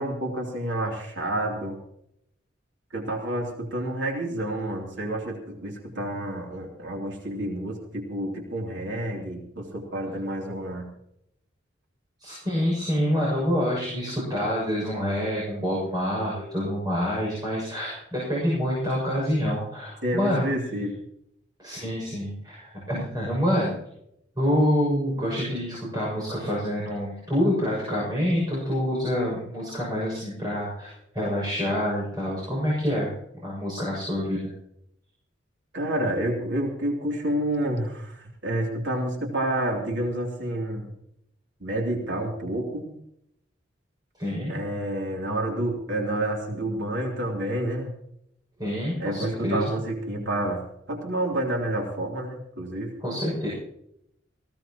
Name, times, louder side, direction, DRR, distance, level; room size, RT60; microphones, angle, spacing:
voice 1, 0.0-1.7 2.9-10.9 20.0-20.9 35.7-40.9 41.6-42.8 44.5-47.9 49.0-52.9, right 1 dB, 70° right, 0 dB, 3.2 m, -29 dB
voice 2, 12.2-20.5 21.6-23.8 24.4-33.1 33.4-34.5 44.2-44.5 48.6-49.7 53.0-53.5, equal, 20° right, -6 dB, 6.8 m, -27 dB
19.5 x 17.0 x 3.0 m, 0.75 s
head